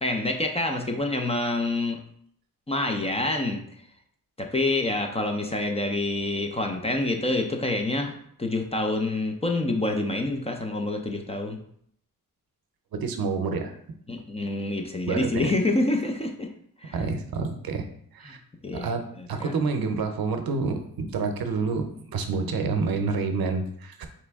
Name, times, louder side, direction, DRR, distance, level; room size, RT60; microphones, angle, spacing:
voice 1, 0.0-2.0 2.7-3.8 4.4-11.6 14.1-16.5 16.8-17.0 18.2-18.4 18.6-18.9 19.2-19.5, left 2 dB, 20° left, 3 dB, 0.4 m, -27 dB
voice 2, 12.9-13.7 15.1-15.5 16.9-17.9 18.1-18.4 18.7-19.0 19.3-24.1, right 4 dB, 85° right, 6 dB, 0.7 m, -28 dB
4.1 x 3.0 x 3.5 m, 0.66 s
wide cardioid pair, 140°, 35 cm